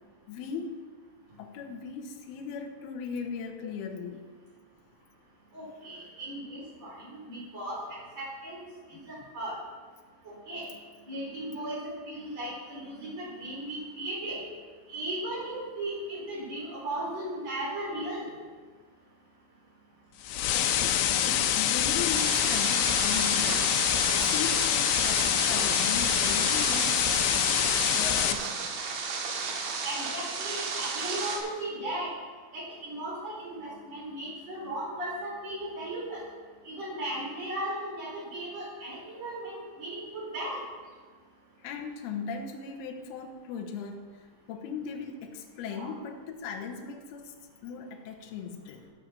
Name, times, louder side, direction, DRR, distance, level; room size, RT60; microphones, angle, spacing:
voice 1, 0.3-0.8 1.4-4.3 8.9-9.3 20.5-23.8 24.1-27.2 27.9-28.8 41.6-48.9, left 6 dB, 70° left, 3 dB, 2.8 m, -38 dB
voice 2, 5.5-9.6 10.2-10.7 11.1-14.4 14.9-18.3 27.3-27.5 29.8-32.1 32.5-36.2 36.6-40.6 45.7-45.9, right 1 dB, 35° right, -5 dB, 5.1 m, -36 dB
sound 1, 20.2-28.3, left 10 dB, 85° left, 3.1 m, -25 dB
sound 2, 22.1-31.4, right 4 dB, 75° right, 3.8 m, -33 dB
16.0 x 6.7 x 5.9 m, 1.5 s
omnidirectional pair, 5.4 m